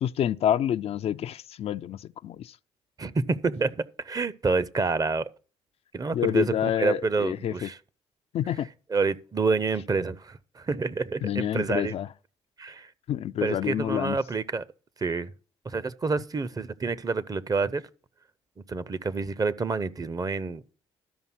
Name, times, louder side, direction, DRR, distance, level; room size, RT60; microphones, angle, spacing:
voice 1, 0.0-2.5 6.1-7.7 8.3-8.7 11.2-12.1 13.1-14.2, left 10 dB, 50° left, 0.4 m, -28 dB
voice 2, 3.0-5.3 5.9-7.8 8.9-11.9 12.6-12.9 13.4-14.6 15.0-15.3 15.6-17.9 18.7-20.6, right 4 dB, 30° right, 0.7 m, -28 dB
13.0 x 5.3 x 6.0 m
hypercardioid pair, 55°, 13 cm